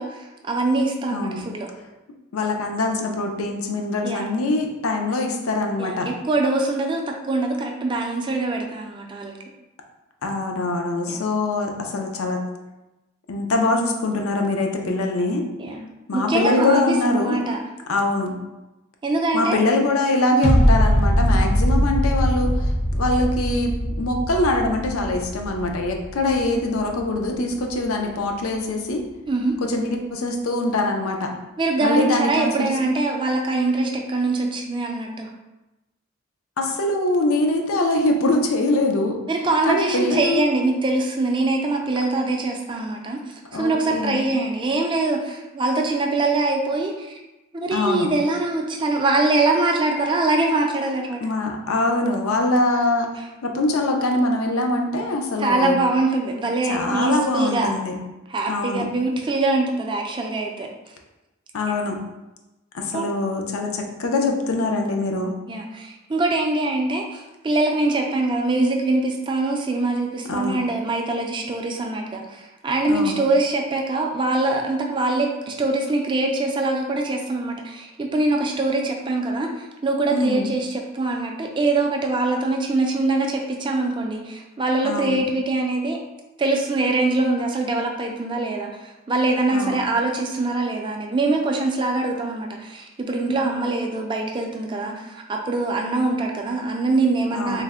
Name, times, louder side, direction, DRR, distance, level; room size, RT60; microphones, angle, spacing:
voice 1, 0.0-1.7 4.0-4.3 5.8-9.4 11.1-11.3 15.6-15.9 16.1-17.6 19.0-19.6 20.3-20.6 26.2-26.6 29.3-29.6 31.6-35.3 39.3-47.2 47.5-51.2 53.2-53.3 55.4-57.7 58.3-60.7 62.9-63.1 65.5-86.0 86.4-97.6, right 2 dB, 20° right, 1 dB, 0.3 m, -23 dB
voice 2, 1.1-1.4 2.3-6.1 10.2-12.4 13.3-15.5 16.1-17.5 17.9-18.4 19.3-23.7 24.0-29.0 29.6-31.3 31.8-32.7 36.6-39.2 39.7-40.5 43.5-44.3 47.7-48.1 51.2-53.1 53.4-55.8 56.7-57.9 58.5-58.8 61.5-62.0 62.7-65.3 70.3-70.6 72.9-73.2 80.1-80.5 84.8-85.3 89.5-89.9 93.2-93.4 97.3-97.6, left 2 dB, 75° left, 2 dB, 0.5 m, -23 dB
sound 1, 20.4-27.5 27.9-28.0, equal, 30° left, 0.5 m, -21 dB
3.3 x 2.1 x 3.5 m, 1.0 s
head